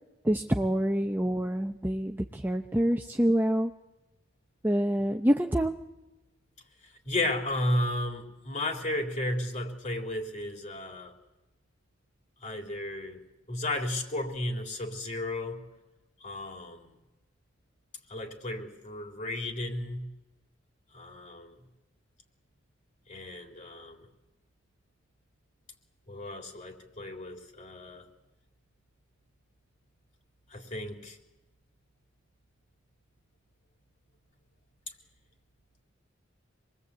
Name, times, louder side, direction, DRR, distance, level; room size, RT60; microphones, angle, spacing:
voice 1, 0.2-3.7 4.6-5.7, equal, 10° right, 4 dB, 0.8 m, -26 dB
voice 2, 6.8-11.2 12.4-13.2 13.5-15.6 16.2-16.9 18.1-20.1 20.9-21.6 23.1-24.1 26.1-28.1 30.5-31.2, left 1 dB, 40° left, 3 dB, 3.6 m, -34 dB
26.5 x 21.0 x 8.4 m, 0.99 s
head